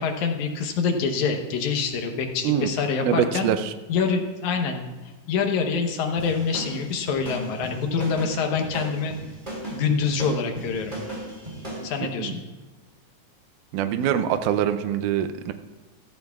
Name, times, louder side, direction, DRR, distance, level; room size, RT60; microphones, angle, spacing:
voice 1, 0.0-3.5 3.9-4.8 5.3-9.1 9.7-11.0 11.8-12.4, left 5 dB, 70° left, 4 dB, 2.3 m, -25 dB
voice 2, 3.0-3.7 12.0-12.3 13.7-15.5, right 9 dB, 80° right, 9 dB, 2.1 m, -24 dB
sound 1, 6.2-11.9, right 1 dB, 15° right, 3.8 m, -36 dB
14.5 x 14.5 x 2.4 m, 1.2 s
omnidirectional pair, 3.7 m